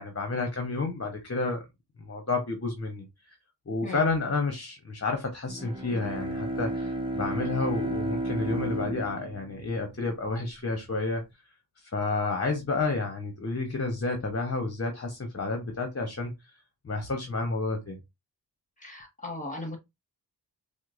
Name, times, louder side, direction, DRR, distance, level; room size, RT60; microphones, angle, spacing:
voice 1, 0.0-1.6 2.0-3.3 3.7-11.2 11.8-16.3 16.8-18.0, left 3 dB, 35° left, 0.9 m, -30 dB
Bowed string instrument, 5.4-10.2, right 1 dB, 10° right, 0.8 m, -33 dB
voice 2, 18.8-19.8, left 2 dB, 20° left, 1.5 m, -37 dB
4.5 x 2.1 x 2.5 m
cardioid pair, 55°, 42 cm